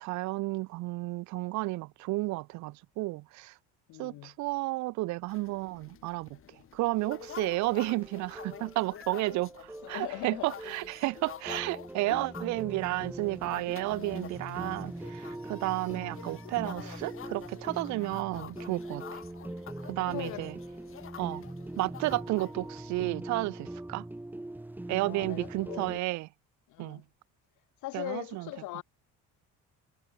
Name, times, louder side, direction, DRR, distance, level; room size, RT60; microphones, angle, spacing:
voice 1, 0.0-3.5 4.0-6.3 6.7-9.5 9.9-19.0 19.9-20.5 21.2-21.4 21.8-24.0 24.9-26.3 26.8-27.0 27.9-28.5, right 20 dB, 70° right, 0.5 m, -32 dB
voice 2, 3.9-4.3 9.8-10.5 12.1-12.3 20.1-20.6 25.0-25.9 26.7-27.0 27.8-28.8, left 20 dB, 85° left, 1.1 m, -40 dB
sound 1, 5.3-23.1, left 10 dB, 45° left, 2.4 m, -49 dB
sound 2, 7.0-26.0, right 1 dB, 5° right, 1.3 m, -42 dB
cardioid pair, 140°, 30 cm